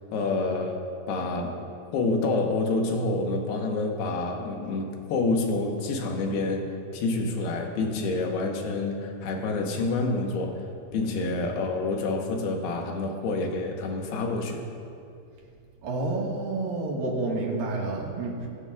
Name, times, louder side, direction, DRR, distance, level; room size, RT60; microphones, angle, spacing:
voice 1, 0.1-0.8 1.1-1.5 1.9-6.7 6.9-10.6 10.9-14.6, left 3 dB, 75° left, 2 dB, 2.9 m, -28 dB
voice 2, 15.8-18.5, right 2 dB, 65° right, -2 dB, 3.0 m, -29 dB
22.0 x 9.8 x 2.4 m, 2.4 s
omnidirectional pair, 4.9 m